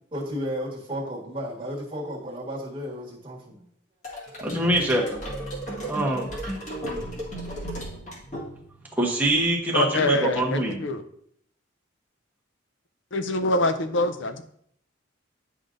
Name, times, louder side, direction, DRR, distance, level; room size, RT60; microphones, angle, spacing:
voice 1, 0.1-3.6 7.3-7.9, equal, 25° right, -4 dB, 1.5 m, -34 dB
sound 1, 4.0-8.9, right 1 dB, 35° left, 1.8 m, -35 dB
voice 2, 4.4-5.1 5.8-6.3 9.0-10.8, right 1 dB, 10° right, -2 dB, 1.1 m, -24 dB
voice 3, 9.7-11.0 13.1-14.4, left 1 dB, 65° left, 9 dB, 0.6 m, -24 dB
9.5 x 5.0 x 2.6 m, 0.68 s
head